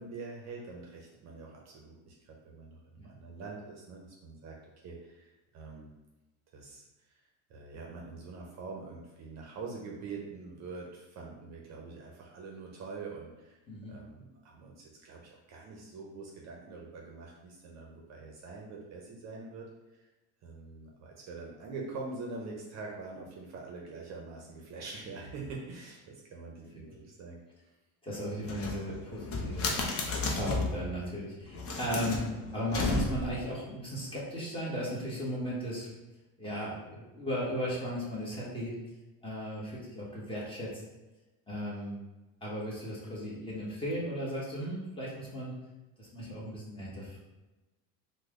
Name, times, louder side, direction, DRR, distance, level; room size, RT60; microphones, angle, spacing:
voice 1, 0.0-5.9 6.5-7.2 7.5-13.6 13.9-19.7 20.4-27.4, right 3 dB, 40° right, -1 dB, 0.6 m, -44 dB
voice 2, 28.0-29.7 30.2-32.2 32.5-35.9 36.4-38.7 39.2-40.7 41.5-42.0 42.4-45.5 46.0-47.2, equal, 15° left, -6 dB, 0.9 m, -36 dB
sound 1, 28.4-30.8 31.5-33.4, left 3 dB, 35° left, 0.6 m, -33 dB
3.1 x 2.1 x 3.5 m, 1.1 s
supercardioid pair, 120°, 40 cm